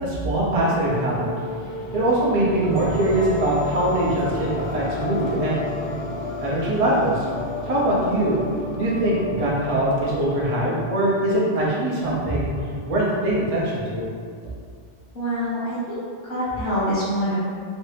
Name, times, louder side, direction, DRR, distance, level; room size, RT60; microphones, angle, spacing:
voice 1, 0.0-1.3 1.9-5.6 6.4-7.2 7.6-8.4 8.8-12.5 12.9-14.1, right 1 dB, 40° right, -5 dB, 0.7 m, -22 dB
sound 1, 0.5-13.5, left 2 dB, 80° left, 0.8 m, -32 dB
voice 2, 15.1-16.0 16.3-17.4, equal, 55° left, -10 dB, 1.1 m, -25 dB
3.1 x 2.6 x 3.2 m, 2.1 s
omnidirectional pair, 1.0 m